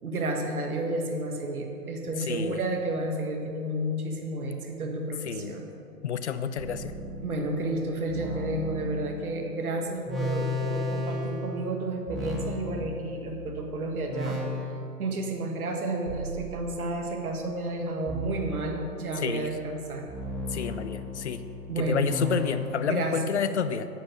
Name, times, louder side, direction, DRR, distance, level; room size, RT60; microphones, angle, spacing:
voice 1, 0.0-5.7 7.2-14.7 15.0-20.0 21.7-22.1 22.8-23.2, right 2 dB, 60° right, 2 dB, 1.7 m, -31 dB
voice 2, 2.3-2.6 5.2-5.6 6.0-6.9 19.2-19.5 20.5-21.4 21.8-23.9, left 7 dB, 45° left, 12 dB, 0.6 m, -29 dB
sound 1, 6.6-13.6 14.1-15.2 16.1-17.2 18.1-19.3 20.1-22.9, left 1 dB, ahead, 1.2 m, -36 dB
9.5 x 7.4 x 6.8 m, 2.6 s
figure-of-eight pair, 125°, 49 cm